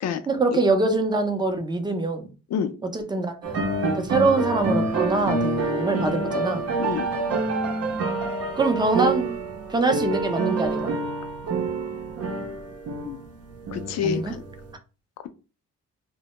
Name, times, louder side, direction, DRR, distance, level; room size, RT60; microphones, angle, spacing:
voice 1, 0.3-2.3 2.9-3.7 3.9-6.6 8.6-9.4 9.7-10.9 14.0-14.3, right 3 dB, 15° right, 5 dB, 0.5 m, -24 dB
sound 1, 3.4-14.7, right 3 dB, 55° right, 0.6 m, -27 dB
voice 2, 13.7-14.4, left 7 dB, 60° left, 10 dB, 0.5 m, -27 dB
2.1 x 2.1 x 2.9 m, 0.33 s
cardioid pair, 90°, 30 cm